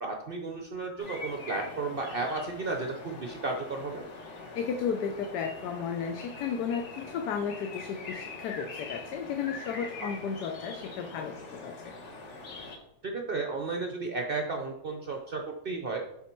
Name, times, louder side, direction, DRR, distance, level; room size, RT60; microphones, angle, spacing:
voice 1, 0.0-4.1 13.0-16.0, right 3 dB, 60° right, 2 dB, 0.6 m, -33 dB
sound 1, 1.0-12.8, left 3 dB, 50° left, 1.4 m, -43 dB
voice 2, 4.5-11.9, left 6 dB, 85° left, 6 dB, 1.2 m, -34 dB
8.4 x 3.7 x 4.4 m, 0.81 s
omnidirectional pair, 1.7 m